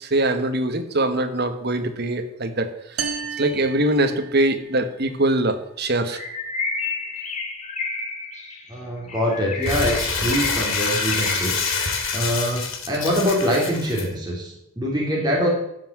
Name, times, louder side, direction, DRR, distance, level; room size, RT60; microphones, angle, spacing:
voice 1, 0.0-2.7 3.4-6.2, right 1 dB, 50° right, 7 dB, 1.4 m, -22 dB
sound 1, 3.0-4.7, right 6 dB, 75° right, 1.7 m, -32 dB
Bird, 6.1-12.4, left 3 dB, 30° left, 1.7 m, -31 dB
voice 2, 8.7-11.8 12.1-15.5, equal, 20° right, -3 dB, 3.3 m, -24 dB
Crumpling crinkling, 9.6-14.0, left 4 dB, 65° left, 2.1 m, -26 dB
14.5 x 5.9 x 7.6 m, 0.82 s
head